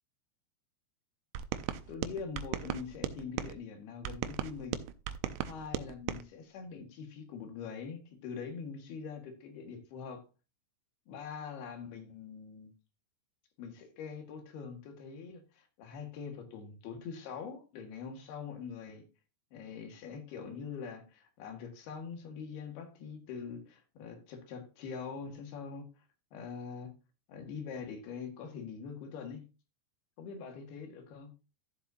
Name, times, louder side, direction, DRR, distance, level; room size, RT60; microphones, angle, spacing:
sound 1, 1.4-3.5 4.0-6.2, right 11 dB, 80° right, 2.6 m, -37 dB
voice 1, 1.9-4.9 5.4-10.2 11.1-12.7 13.6-19.1 19.5-26.1 26.3-26.9 27.3-29.5 30.2-31.3, left 6 dB, 65° left, 6 dB, 3.5 m, -43 dB
13.5 x 7.6 x 2.7 m, 0.30 s
omnidirectional pair, 5.1 m